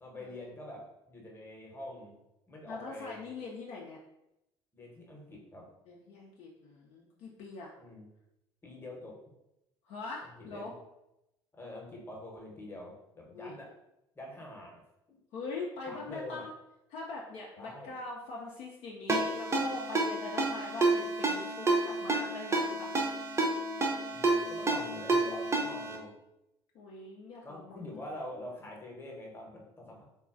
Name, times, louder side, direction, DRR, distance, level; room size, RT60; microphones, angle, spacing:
voice 1, 0.0-2.1 2.5-3.3 4.7-5.7 7.8-8.1 8.6-9.2 10.2-10.7 11.5-13.7 14.2-14.8 15.1-15.2 15.9-16.5 17.6-17.9 24.1-26.1 27.4-30.0, left 1 dB, 15° left, -1 dB, 0.9 m, -45 dB
voice 2, 2.6-4.0 5.9-7.7 9.9-10.7 13.3-13.6 15.3-16.5 16.9-22.9 26.7-28.1, left 3 dB, 50° left, -2 dB, 0.5 m, -42 dB
Ringtone, 19.1-26.0, right 2 dB, 20° right, 0.6 m, -30 dB
3.7 x 2.3 x 2.4 m, 0.87 s
figure-of-eight pair, 60°, 14 cm